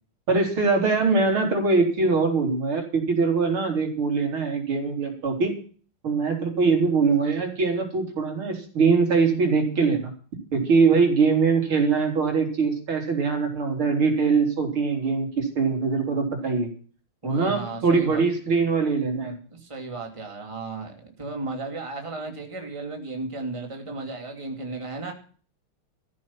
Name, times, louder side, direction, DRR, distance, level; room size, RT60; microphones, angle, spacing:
voice 1, 0.3-5.6 6.0-10.1 10.5-16.7 17.2-19.3, right 4 dB, 75° right, 2 dB, 4.4 m, -22 dB
voice 2, 17.2-18.2 19.3-25.1, right 3 dB, 15° right, 2 dB, 2.6 m, -35 dB
14.5 x 8.5 x 7.3 m, 0.41 s
omnidirectional pair, 2.4 m